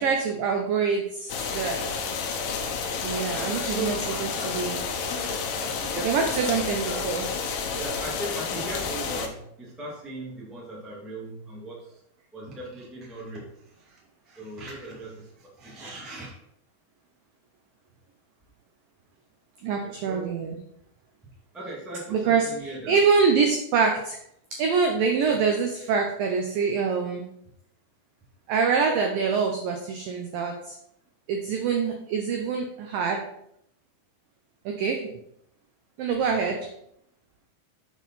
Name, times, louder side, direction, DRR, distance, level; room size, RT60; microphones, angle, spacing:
voice 1, 0.0-1.9 3.0-4.8 6.0-7.3 19.6-20.6 22.1-24.2 24.6-27.2 28.5-30.7 31.3-33.2 34.7-35.0 36.0-36.6, right 5 dB, 80° right, 3 dB, 2.0 m, -25 dB
sound 1, 1.3-9.3, left 5 dB, 75° left, 2.8 m, -30 dB
voice 2, 3.3-7.0 7.7-12.0 12.3-16.3 19.7-20.5 21.5-23.0 25.2-25.4 36.3-36.5, right 2 dB, ahead, -5 dB, 0.5 m, -39 dB
7.7 x 4.6 x 5.7 m, 0.75 s
omnidirectional pair, 5.1 m